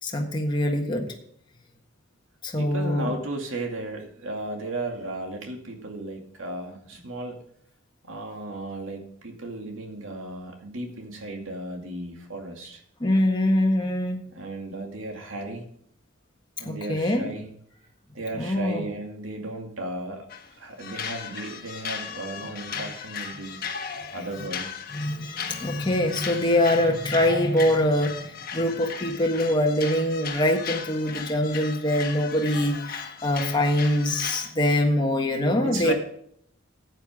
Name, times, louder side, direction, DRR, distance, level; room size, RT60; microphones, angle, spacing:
voice 1, 0.0-1.1 2.4-3.1 13.0-14.2 16.6-17.3 18.3-18.8 24.9-35.9, left 1 dB, 20° left, 1 dB, 1.5 m, -24 dB
voice 2, 2.6-7.4 8.0-12.8 14.3-15.7 16.6-17.5 18.1-20.3 20.6-23.6 24.1-24.7 35.6-35.9, right 2 dB, 75° right, 3 dB, 2.4 m, -35 dB
sound 1, 20.3-20.5 20.8-34.5, left 6 dB, 45° left, 1.4 m, -36 dB
14.0 x 9.1 x 3.6 m, 0.66 s
head